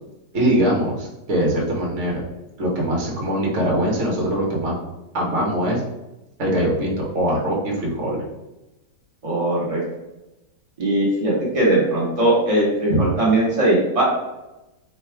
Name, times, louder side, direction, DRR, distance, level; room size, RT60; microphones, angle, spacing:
voice 1, 0.3-2.2 2.6-4.8 5.1-5.8 6.4-8.2 12.9-13.0, right 1 dB, 50° right, -3 dB, 1.1 m, -22 dB
voice 2, 9.2-9.8 10.8-14.0, right 1 dB, 20° right, -5 dB, 1.1 m, -19 dB
3.3 x 2.3 x 4.3 m, 0.98 s
omnidirectional pair, 1.8 m